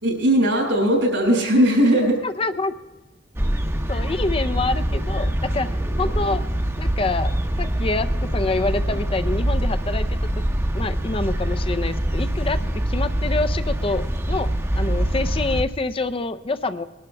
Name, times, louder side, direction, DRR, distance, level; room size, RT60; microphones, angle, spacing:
voice 1, 0.0-2.2, equal, 85° right, 0 dB, 6.0 m, -18 dB
voice 2, 2.2-2.7 3.9-6.4 6.8-10.4 10.7-16.8, left 3 dB, 30° left, 11 dB, 0.5 m, -27 dB
sound 1, 3.3-15.6, right 1 dB, 15° right, 0.8 m, -24 dB
22.0 x 12.0 x 3.4 m, 1.2 s
head